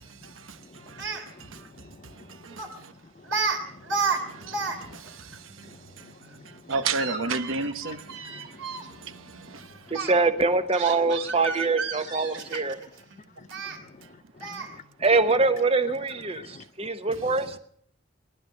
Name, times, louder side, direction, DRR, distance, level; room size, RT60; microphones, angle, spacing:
voice 1, 0.0-1.7 2.0-2.9 4.1-9.9 11.7-11.8 13.1-13.2 13.5-13.6 14.0-14.1, right 4 dB, 85° right, 1.1 m, -35 dB
voice 2, 0.6-2.5 3.0-5.0 5.6-6.7 8.1-9.7 12.7-12.8 13.4-14.1 14.3-14.8 16.3-16.6 17.1-17.6, left 3 dB, 35° left, 0.7 m, -50 dB
Speech, 0.9-1.2 2.6-2.8 3.3-3.6 3.8-4.8 5.0-5.1 6.7-8.9 9.9-10.1 10.7-12.9 13.5-13.8 14.4-14.8, right 4 dB, 65° right, 3.0 m, -31 dB
voice 3, 9.9-12.8 15.0-17.5, right 3 dB, 30° right, 1.1 m, -24 dB
19.0 x 11.5 x 6.5 m
head